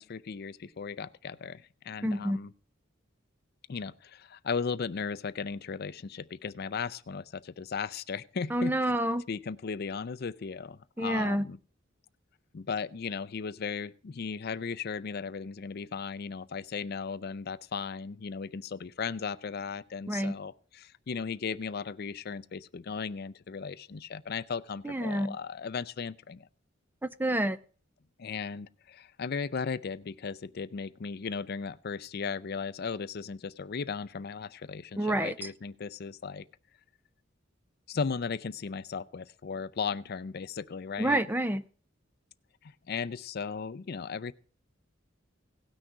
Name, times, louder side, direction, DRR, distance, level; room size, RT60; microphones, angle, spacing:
voice 1, 0.0-2.5 3.7-8.8 9.3-11.6 12.5-26.5 28.2-36.5 37.9-41.2 42.6-44.3, left 5 dB, 50° left, 15 dB, 0.5 m, -36 dB
voice 2, 2.0-2.4 8.5-9.2 11.0-11.4 20.1-20.3 24.8-25.4 27.0-27.6 35.0-35.5 41.0-41.6, right 1 dB, 10° right, 12 dB, 0.5 m, -28 dB
17.5 x 6.3 x 4.6 m, 0.41 s
head